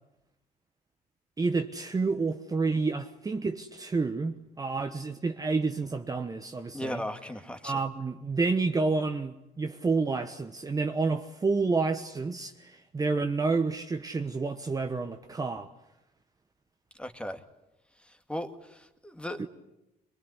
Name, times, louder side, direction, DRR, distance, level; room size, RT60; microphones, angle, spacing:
voice 1, 1.4-7.0 7.6-15.7 19.4-19.5, right 4 dB, 20° right, 1.1 m, -29 dB
voice 2, 6.7-7.8 17.0-17.4 18.3-19.5, left 1 dB, 5° left, 2.1 m, -37 dB
23.0 x 22.5 x 9.8 m
cardioid pair, 110°, 17 cm